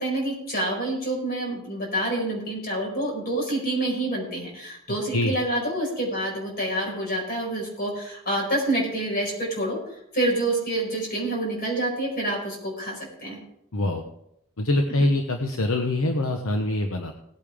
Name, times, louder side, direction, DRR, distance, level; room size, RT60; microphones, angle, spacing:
voice 1, 0.0-9.8 10.1-13.4, right 1 dB, 40° left, -1 dB, 4.8 m, -27 dB
voice 2, 13.7-14.0 14.6-17.1, left 2 dB, 70° left, 4 dB, 1.0 m, -24 dB
18.0 x 8.7 x 3.5 m, 0.78 s
head